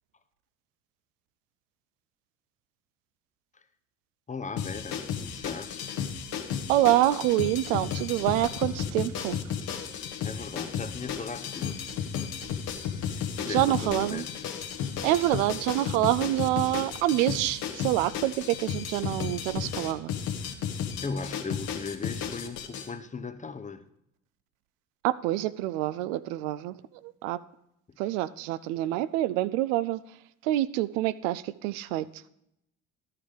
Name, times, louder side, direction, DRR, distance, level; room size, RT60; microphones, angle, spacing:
voice 1, 4.3-5.9 10.2-11.9 13.0-14.6 20.7-23.8 27.9-28.0, left 4 dB, 20° left, 0.7 m, -38 dB
sound 1, 4.6-22.9, left 8 dB, 55° left, 1.2 m, -34 dB
voice 2, 6.7-9.4 13.5-14.2 15.0-20.1 25.0-26.7 27.0-27.4 28.0-30.0 30.4-32.0, right 15 dB, 70° right, 0.5 m, -26 dB
12.0 x 5.7 x 5.1 m
hypercardioid pair, 55°, 41 cm